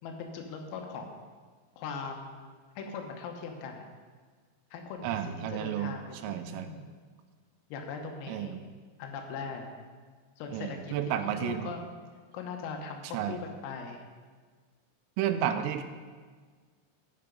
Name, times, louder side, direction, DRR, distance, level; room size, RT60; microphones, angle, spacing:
voice 1, 0.0-1.2 1.8-2.4 2.8-3.9 4.7-5.2 5.5-6.9 7.7-8.5 9.0-9.7 10.4-11.0 11.2-11.8 12.3-14.0, left 5 dB, 85° left, 3 dB, 3.9 m, -40 dB
voice 2, 5.0-5.9 6.2-6.7 8.3-8.6 10.5-11.7 13.1-13.4 15.2-15.8, right 10 dB, 90° right, 8 dB, 3.2 m, -32 dB
17.5 x 5.8 x 5.3 m, 1.5 s
omnidirectional pair, 5.8 m